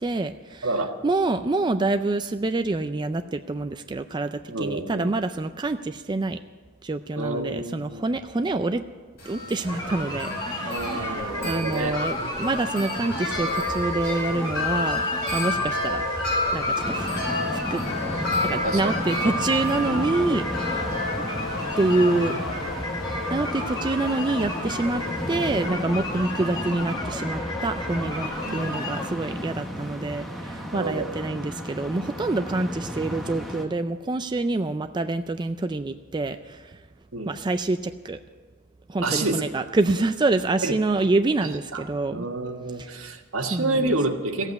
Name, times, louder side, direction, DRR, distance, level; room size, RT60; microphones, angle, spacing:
voice 1, 0.0-0.7 1.0-6.4 6.8-8.8 9.3-15.0 15.3-16.0 16.5-17.1 17.5-17.8 18.4-20.8 21.8-22.3 23.3-25.0 25.3-36.8 37.3-38.2 38.9-42.3 42.8-43.1 43.5-44.0, right 2 dB, 20° right, 8 dB, 0.4 m, -26 dB
voice 2, 0.6-0.9 4.5-5.1 7.1-8.1 10.6-12.0 18.6-18.9 19.9-20.0 25.7-25.8 28.4-28.7 30.7-31.1 37.1-37.3 39.0-39.4 40.6-40.7 41.4-41.8 42.1-44.5, right 2 dB, 80° right, 4 dB, 1.5 m, -28 dB
Wind chime, 9.2-25.7, left 2 dB, 50° left, 5.9 m, -31 dB
sound 1, 9.6-29.1, left 1 dB, 20° left, 2.1 m, -33 dB
sound 2, 16.8-33.6, equal, ahead, 1.3 m, -34 dB
15.0 x 8.2 x 9.5 m, 1.5 s
head